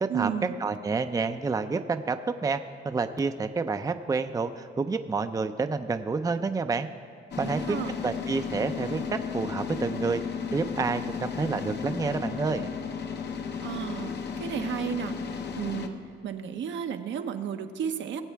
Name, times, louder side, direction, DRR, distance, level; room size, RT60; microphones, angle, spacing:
voice 1, 0.1-0.6 7.4-7.9 13.6-18.2, right 8 dB, 70° right, 7 dB, 0.8 m, -33 dB
voice 2, 0.6-2.6 2.8-6.9 7.4-10.2 10.5-12.7, right 4 dB, 20° right, 8 dB, 0.5 m, -29 dB
sound 1, 7.3-15.9, left 6 dB, 60° left, 0.9 m, -34 dB
19.5 x 8.2 x 3.4 m, 2.7 s
cardioid pair, 90°, 20 cm